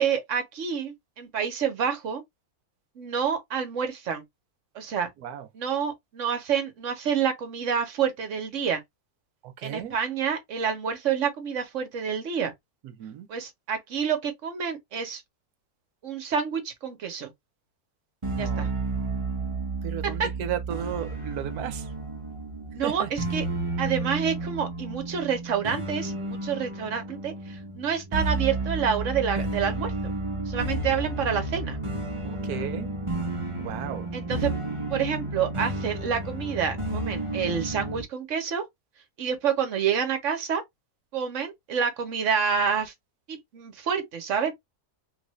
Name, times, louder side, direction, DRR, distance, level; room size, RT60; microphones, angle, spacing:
voice 1, 0.0-2.2 3.0-4.2 4.7-5.1 5.5-8.8 9.6-12.5 13.3-15.2 16.0-17.3 18.4-18.7 20.0-20.3 22.7-23.4 23.8-30.1 30.5-31.8 34.1-34.5 34.9-38.6 39.2-40.6 41.1-42.9 43.3-44.5, right 7 dB, 55° right, 1.3 m, -28 dB
voice 2, 9.4-10.0 12.8-13.3 18.3-18.7 19.8-21.9 22.8-23.1 32.2-32.9 33.6-34.1, right 10 dB, 80° right, 1.2 m, -35 dB
sound 1, 18.2-38.0, right 2 dB, 30° right, 0.7 m, -31 dB
3.3 x 2.5 x 3.1 m
omnidirectional pair, 1.6 m